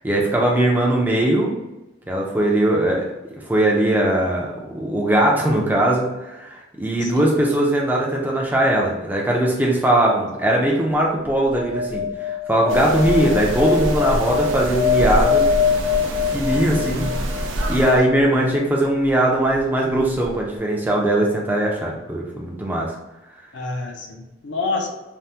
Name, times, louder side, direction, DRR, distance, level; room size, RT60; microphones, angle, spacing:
voice 1, 0.0-1.5 2.1-3.1 3.4-15.4 16.3-17.1 17.7-22.9, right 1 dB, 10° right, -2 dB, 0.4 m, -20 dB
sound 1, 11.5-17.7 20.0-20.1 20.2-20.3, left 6 dB, 40° right, 0.8 m, -23 dB
sound 2, 12.7-18.0, right 1 dB, 80° right, 0.5 m, -26 dB
voice 2, 16.8-17.2 18.2-18.5 23.5-24.9, left 3 dB, 60° left, 1 dB, 0.5 m, -28 dB
3.3 x 2.1 x 2.7 m, 1.0 s
head